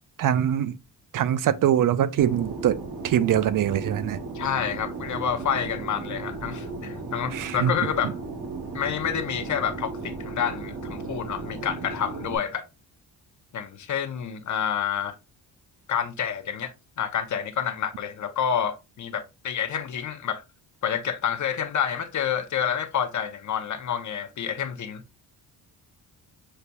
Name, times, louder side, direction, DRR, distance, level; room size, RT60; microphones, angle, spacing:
voice 1, 0.2-0.7 1.1-2.8 3.0-4.2 7.3-7.7, right 10 dB, 55° right, 0.5 m, -23 dB
Fixed-wing aircraft airplane, 2.2-12.4, right 3 dB, 85° right, 1.3 m, -35 dB
voice 2, 4.3-8.1 8.7-12.7 13.5-15.2 15.9-20.4 20.8-25.0, left 8 dB, 50° left, 0.7 m, -28 dB
6.5 x 2.8 x 2.2 m
wide cardioid pair, 145°, 39 cm